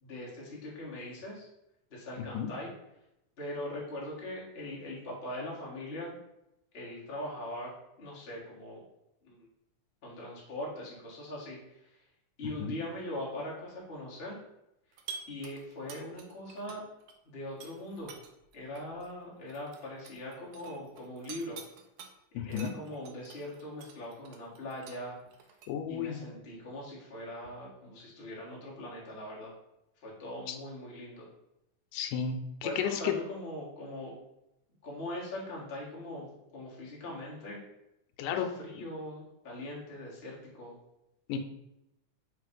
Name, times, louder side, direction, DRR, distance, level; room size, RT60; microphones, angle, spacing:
voice 1, 0.0-1.5 1.9-2.7 3.4-6.2 6.7-7.7 8.0-8.8 9.2-9.5 10.0-12.0 12.4-14.4 15.3-16.9 17.2-18.1 18.5-21.6 22.4-25.2 25.9-29.5 30.0-31.3 32.6-34.1 34.8-37.6 38.3-40.8, left 1 dB, 30° left, -5 dB, 1.1 m, -41 dB
sound 1, 14.9-17.1 17.5-22.1 22.5-25.7, right 6 dB, 75° right, 1.9 m, -48 dB
voice 2, 22.4-22.7 25.7-26.2 30.5-30.6 31.9-33.1 38.2-38.5 41.3-41.4, left 8 dB, 85° left, 6 dB, 2.2 m, -33 dB
5.8 x 3.2 x 5.2 m, 0.89 s
omnidirectional pair, 3.6 m